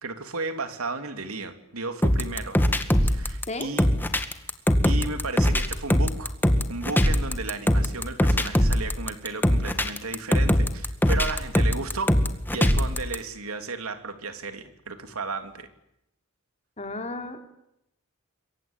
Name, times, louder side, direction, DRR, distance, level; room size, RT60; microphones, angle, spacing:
voice 1, 0.0-2.6 3.0-3.9 4.8-6.4 6.7-12.1 12.5-15.7, right 3 dB, 80° right, 8 dB, 3.0 m, -34 dB
sound 1, 2.0-13.2, equal, 10° left, 2.0 m, -22 dB
voice 2, 16.8-17.4, left 2 dB, 35° left, 5 dB, 3.7 m, -33 dB
27.5 x 23.0 x 8.9 m, 0.82 s
head